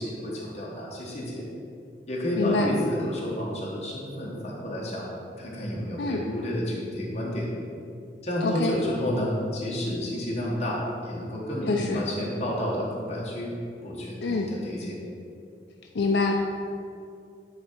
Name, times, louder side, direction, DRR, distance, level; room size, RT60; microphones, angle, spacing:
voice 1, 0.0-1.4 2.1-5.1 5.4-7.5 8.2-13.5 13.8-14.2 14.5-15.0, equal, 40° left, -5 dB, 1.5 m, -30 dB
voice 2, 2.4-2.7 6.0-6.2 8.4-8.8 11.7-12.0 14.2-14.5 15.9-16.3, left 3 dB, 70° left, 1 dB, 0.5 m, -25 dB
9.7 x 3.7 x 4.5 m, 2.5 s
head